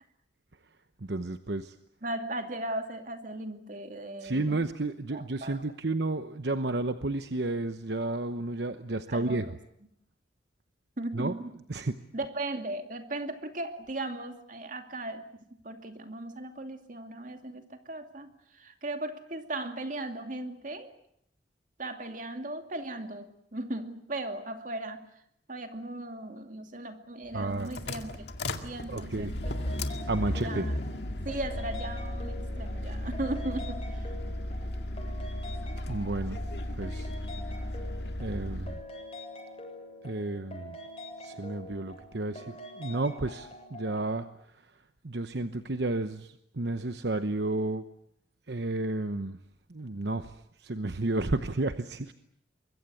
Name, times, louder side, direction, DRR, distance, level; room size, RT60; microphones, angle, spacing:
voice 1, 1.0-1.7 4.2-9.5 11.1-11.3 11.7-11.9 27.3-27.7 28.9-29.3 30.1-30.7 35.9-36.4 36.8-37.1 38.2-38.8 40.0-40.8 41.2-42.5 42.8-44.3 45.0-47.8 48.5-49.4 49.7-50.3 50.6-52.1, right 2 dB, 65° right, 9 dB, 1.0 m, -31 dB
voice 2, 2.0-4.6 5.1-5.6 9.1-9.6 11.0-11.5 12.1-20.9 21.8-25.1 25.5-28.3 28.6-29.6 30.2-30.8 31.2-34.1, right 2 dB, 45° right, 6 dB, 2.5 m, -37 dB
sound 1, 27.3-38.8, left 1 dB, 65° left, 2.1 m, -35 dB
sound 2, 29.4-44.2, left 1 dB, 30° left, 7.4 m, -45 dB
24.5 x 22.5 x 8.4 m, 0.75 s
head